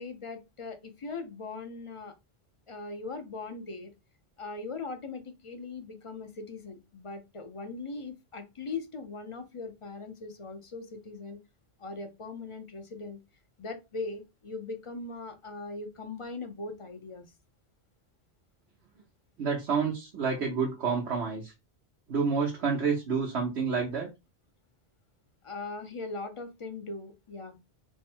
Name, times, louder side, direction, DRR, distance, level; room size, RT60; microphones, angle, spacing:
voice 1, 0.0-2.1 2.7-3.9 4.4-11.4 11.8-13.2 13.6-17.3 25.4-27.5, left 3 dB, 35° left, 6 dB, 0.6 m, -40 dB
voice 2, 19.4-21.5 22.1-24.1, right 5 dB, 85° right, -1 dB, 1.2 m, -29 dB
3.4 x 2.2 x 4.3 m, 0.24 s
omnidirectional pair, 1.1 m